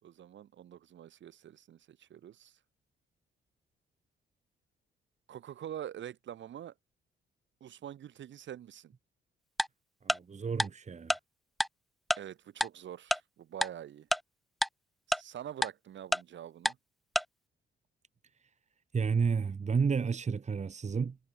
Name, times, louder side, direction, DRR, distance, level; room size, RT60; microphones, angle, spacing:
voice 1, 0.0-2.5 5.3-6.7 7.6-8.9 12.2-14.1 15.1-16.8, right 10 dB, 70° right, 6.3 m, -45 dB
Tick-tock, 9.6-9.7 10.1-10.2 10.6-10.7 11.1-11.2 11.6-11.7 12.1-12.2 12.6-12.7 13.1-13.2 13.6-13.7 14.1-14.2 14.6-14.7 15.1-15.2 15.6-15.7 16.1-16.2 16.7-16.8 17.2-17.3, equal, ahead, 0.3 m, -27 dB
voice 2, 10.0-11.2 18.9-21.2, right 5 dB, 35° right, 2.4 m, -31 dB
cardioid pair, 90°, 20 cm